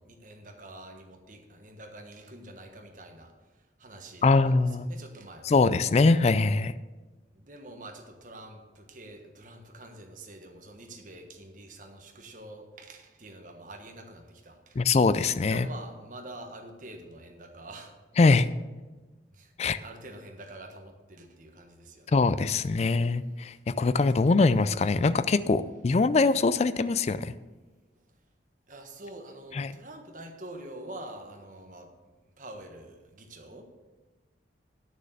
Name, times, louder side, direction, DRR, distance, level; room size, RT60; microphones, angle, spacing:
voice 1, 0.0-5.7 7.3-15.0 15.4-18.3 19.3-22.2 22.8-23.0 28.1-28.2 28.7-31.9 32.4-33.6, right 1 dB, 45° right, 3 dB, 1.4 m, -46 dB
voice 2, 4.2-4.9 5.5-6.7 14.8-15.7 18.2-18.5 19.6-19.8 22.1-27.3 29.6-29.7, left 3 dB, 35° left, 15 dB, 0.3 m, -23 dB
9.3 x 6.5 x 6.6 m, 1.2 s
head